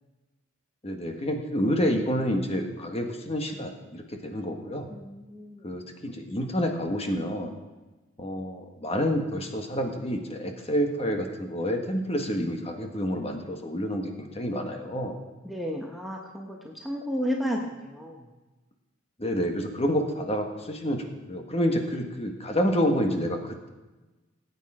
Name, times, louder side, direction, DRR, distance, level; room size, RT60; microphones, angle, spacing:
voice 1, 0.8-4.9 5.6-7.5 8.2-15.2 19.2-23.7, equal, 30° left, 4 dB, 1.5 m, -28 dB
voice 2, 4.9-5.8 15.4-18.3, equal, ahead, -1 dB, 1.1 m, -33 dB
17.5 x 8.5 x 4.9 m, 1.2 s
head